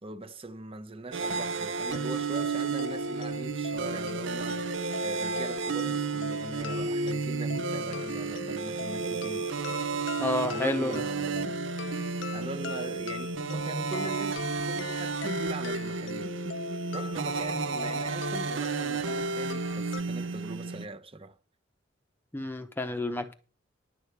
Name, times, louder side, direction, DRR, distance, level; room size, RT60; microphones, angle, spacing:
voice 1, 0.0-9.5 10.5-11.6 12.3-21.4, right 2 dB, 30° right, 0.9 m, -41 dB
sound 1, 1.1-20.9, right 4 dB, 75° right, 0.6 m, -32 dB
sound 2, 1.9-20.0, left 3 dB, 75° left, 0.6 m, -40 dB
voice 2, 10.2-11.0 22.3-23.3, left 1 dB, 10° left, 0.8 m, -30 dB
11.0 x 4.9 x 8.2 m
head